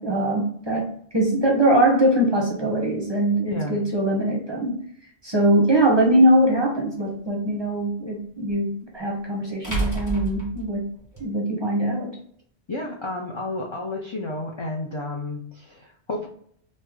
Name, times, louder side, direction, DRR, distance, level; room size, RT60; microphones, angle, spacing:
voice 1, 0.0-4.8 5.2-10.9 11.2-12.1, right 1 dB, 30° right, -1 dB, 0.6 m, -22 dB
voice 2, 3.5-3.8 12.7-16.3, left 2 dB, 50° left, -1 dB, 0.3 m, -31 dB
sound 1, 5.8-5.9 8.5-8.6 9.6-11.2, right 2 dB, 15° left, 1.2 m, -29 dB
3.1 x 2.0 x 3.4 m, 0.63 s
omnidirectional pair, 1.1 m